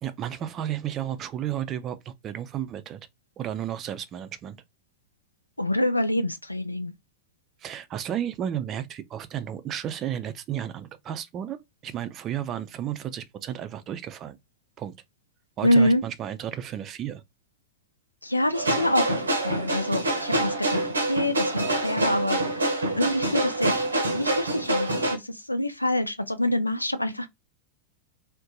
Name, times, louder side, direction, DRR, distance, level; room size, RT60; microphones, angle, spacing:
voice 1, 0.0-3.0 3.4-4.6 7.6-11.6 11.8-14.4 14.8-14.9 15.6-17.2, right 10 dB, 30° right, 0.4 m, -33 dB
voice 2, 5.6-6.9 15.6-16.0 18.2-23.8 24.1-27.3, left 1 dB, 85° left, 0.4 m, -26 dB
sound 1, 18.5-25.2, right 1 dB, 75° right, 0.6 m, -26 dB
2.6 x 2.2 x 3.7 m
figure-of-eight pair, 90°, 0 cm